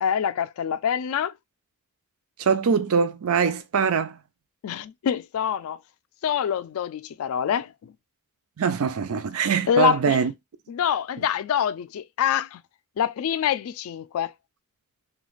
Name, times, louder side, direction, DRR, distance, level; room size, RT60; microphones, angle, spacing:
voice 1, 0.0-1.3 4.6-5.8 6.2-7.9 9.7-10.2 10.7-12.6 13.0-14.3, left 8 dB, 75° left, 0.3 m, -25 dB
voice 2, 2.4-4.2 8.6-10.3, right 6 dB, 80° right, 0.4 m, -23 dB
3.2 x 2.3 x 2.3 m
head